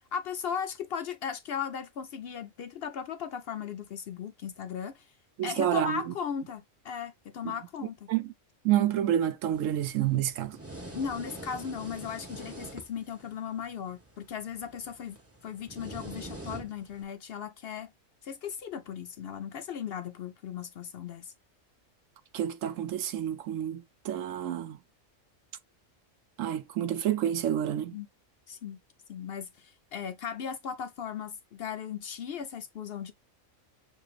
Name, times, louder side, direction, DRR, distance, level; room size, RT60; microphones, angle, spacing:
voice 1, 0.1-5.1 5.4-8.1 10.9-15.2 15.4-17.9 18.2-21.3 27.9-28.1 28.5-28.8 29.1-33.1, left 7 dB, 60° left, 0.7 m, -37 dB
voice 2, 5.4-6.1 7.4-7.5 8.1-8.3 8.6-10.6 22.3-24.8 26.4-28.0, right 11 dB, 80° right, 1.0 m, -29 dB
sound 1, 9.5-17.0, right 1 dB, 10° right, 1.0 m, -45 dB
6.7 x 2.6 x 2.4 m
omnidirectional pair, 1.4 m